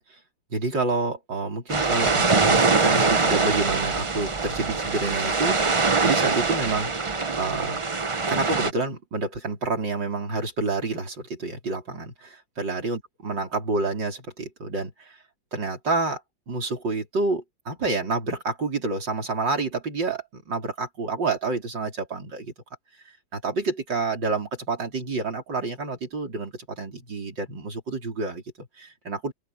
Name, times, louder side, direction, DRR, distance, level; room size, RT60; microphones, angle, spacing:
voice 1, 0.5-5.7 6.0-6.9 7.4-7.8 8.3-15.2 15.5-16.2 16.5-22.5 23.3-29.3, right 3 dB, 70° right, 5.0 m, -28 dB
sound 1, 1.7-8.7, right 4 dB, 40° right, 0.4 m, -23 dB
open air
omnidirectional pair, 2.1 m